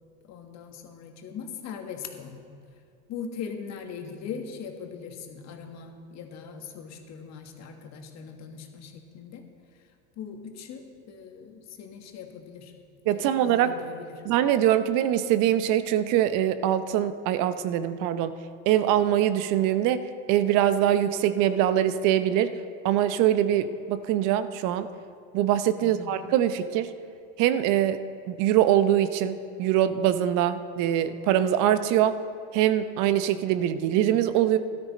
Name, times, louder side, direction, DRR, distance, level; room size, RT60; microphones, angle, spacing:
voice 1, 0.2-2.4 3.1-9.4 10.2-12.7 13.1-14.2 25.8-26.1, left 6 dB, 50° left, 4 dB, 1.6 m, -40 dB
voice 2, 13.1-13.7 14.2-18.4 18.7-22.6 22.8-24.9 25.3-26.9 27.4-28.0 28.3-32.2 32.5-34.6, right 11 dB, 65° right, 12 dB, 0.7 m, -23 dB
13.5 x 12.5 x 4.2 m, 2.4 s
supercardioid pair, 90°, 34 cm